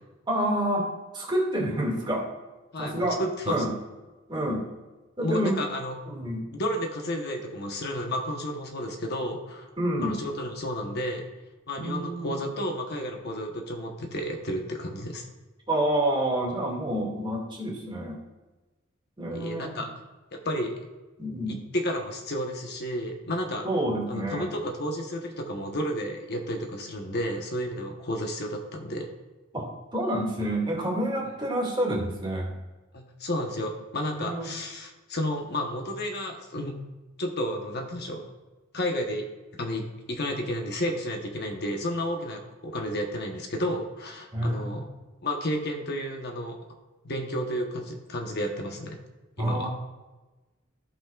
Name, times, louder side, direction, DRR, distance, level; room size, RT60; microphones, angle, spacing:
voice 1, 0.3-2.3 2.8-3.2 3.5-3.7 4.3-4.7 5.2-5.6 6.1-6.5 9.8-10.2 11.8-12.4 15.7-18.2 19.2-19.8 21.2-21.6 23.6-24.5 29.5-32.5 34.2-34.5 44.3-44.9 49.4-49.7, right 1 dB, 25° right, -2 dB, 2.1 m, -28 dB
voice 2, 2.7-3.5 5.2-6.0 6.5-9.7 10.0-11.2 11.7-15.3 19.3-19.9 20.4-20.8 21.5-23.7 24.1-29.1 32.9-36.7 37.2-38.2 38.7-39.3 39.5-44.9 45.2-46.6 47.0-49.0 49.4-49.7, equal, 55° left, 2 dB, 1.0 m, -31 dB
15.5 x 5.7 x 2.4 m, 1.2 s
head